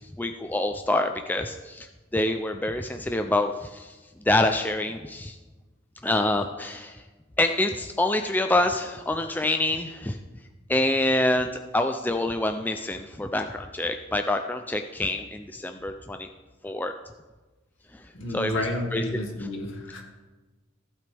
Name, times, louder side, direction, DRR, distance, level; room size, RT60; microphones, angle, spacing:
voice 1, 0.2-1.9 2.1-3.9 4.3-5.4 6.0-7.0 7.4-10.2 10.7-16.3 16.6-16.9 18.3-18.6 18.9-19.0, left 1 dB, 10° left, 5 dB, 0.4 m, -26 dB
voice 2, 18.1-20.0, left 2 dB, 65° left, 1 dB, 2.1 m, -31 dB
15.0 x 8.5 x 3.4 m, 1.2 s
head